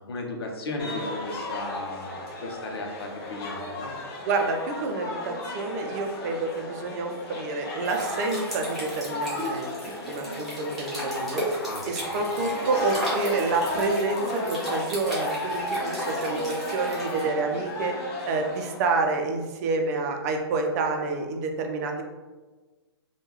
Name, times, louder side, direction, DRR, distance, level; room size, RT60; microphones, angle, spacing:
voice 1, 0.1-3.9 11.6-11.9 12.3-12.4, left 2 dB, 65° left, 1 dB, 0.7 m, -35 dB
sound 1, 0.8-18.8, left 1 dB, 30° left, 0.8 m, -34 dB
voice 2, 4.2-11.4 11.8-18.0 18.3-22.0, right 3 dB, 40° right, 3 dB, 0.5 m, -28 dB
sound 2, 7.8-17.2, equal, ahead, 1.2 m, -35 dB
3.5 x 2.3 x 3.0 m, 1.3 s
hypercardioid pair, 125°, 14 cm